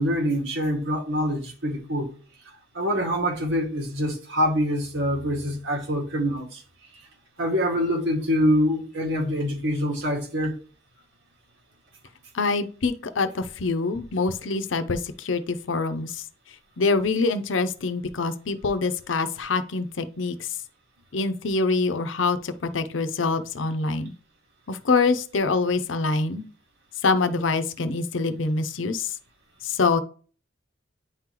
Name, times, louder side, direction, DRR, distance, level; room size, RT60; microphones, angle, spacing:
voice 1, 0.0-2.1 2.7-6.6 7.4-10.6, equal, 75° right, 2.0 m, -25 dB
voice 2, 12.3-16.2 16.8-20.5 21.1-24.1 24.7-26.4 27.0-29.1 29.6-30.0, left 3 dB, 85° left, 0.7 m, -25 dB
9.5 x 3.8 x 3.0 m
head